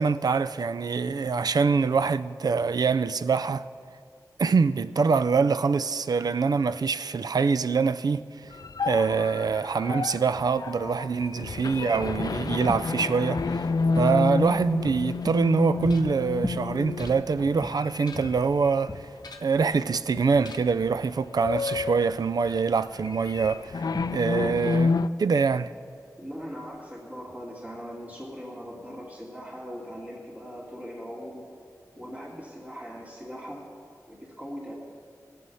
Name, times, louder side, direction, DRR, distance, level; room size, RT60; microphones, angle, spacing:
voice 1, 0.0-3.6 4.4-8.2 8.8-13.7 14.0-19.1 19.4-23.8 24.1-25.7, right 5 dB, 75° right, 0.4 m, -24 dB
sound 1, 8.5-19.2 19.6-19.8 20.3-20.7 21.0-25.1, left 4 dB, 70° left, 0.4 m, -30 dB
sound 2, 11.9-26.8, equal, ahead, 1.0 m, -42 dB
sound 3, 15.9-16.2 17.0-17.6 17.9-18.5 19.2-19.7 20.4-20.8 21.6-22.1, left 4 dB, 85° left, 0.8 m, -48 dB
voice 2, 26.2-31.4 31.9-33.7 34.1-34.8, equal, 25° right, 2.8 m, -40 dB
20.0 x 7.8 x 5.6 m
wide cardioid pair, 60°, 7 cm